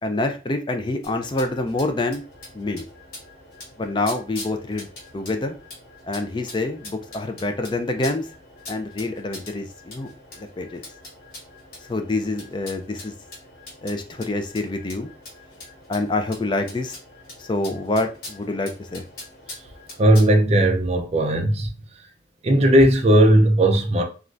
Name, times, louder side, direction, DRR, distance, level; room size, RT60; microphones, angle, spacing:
voice 1, 0.0-2.2 2.5-2.9 3.8-4.9 5.1-5.6 6.1-8.3 8.7-10.8 11.9-13.1 13.8-15.1 15.9-17.0 17.4-19.1, left 2 dB, 25° left, 0.3 m, -26 dB
sound 1, 1.0-20.4, left 2 dB, 50° left, 1.2 m, -43 dB
voice 2, 20.0-21.7 22.4-24.0, right 1 dB, 35° right, 0.4 m, -17 dB
3.2 x 2.4 x 2.5 m
head